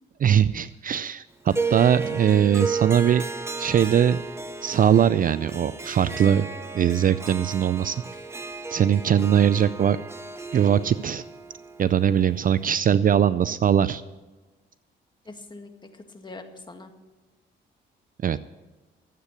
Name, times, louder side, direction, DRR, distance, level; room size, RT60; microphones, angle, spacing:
voice 1, 0.2-3.2 3.6-4.2 4.6-6.4 6.7-8.0 8.7-10.0 10.5-11.2 11.8-14.0 18.2-18.4, right 9 dB, 45° right, 16 dB, 0.4 m, -21 dB
Harp, 1.5-12.8, right 4 dB, 15° right, 1.2 m, -34 dB
voice 2, 15.3-16.9, left 3 dB, 20° left, 5 dB, 1.8 m, -43 dB
13.0 x 8.4 x 8.3 m, 1.2 s
cardioid pair, 90°, 20 cm